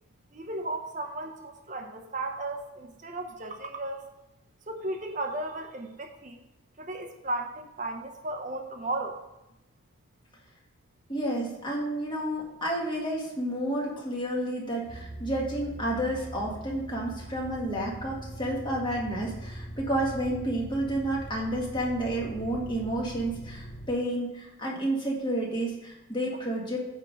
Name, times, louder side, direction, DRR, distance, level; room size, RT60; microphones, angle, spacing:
voice 1, 0.3-4.1 4.7-6.4 6.8-9.2, right 2 dB, 35° right, 4 dB, 0.8 m, -35 dB
voice 2, 11.1-26.8, right 1 dB, 20° left, -3 dB, 1.8 m, -30 dB
sound 1, 14.8-23.9, right 1 dB, 75° left, 1.5 m, -41 dB
9.3 x 3.7 x 6.5 m, 0.93 s
head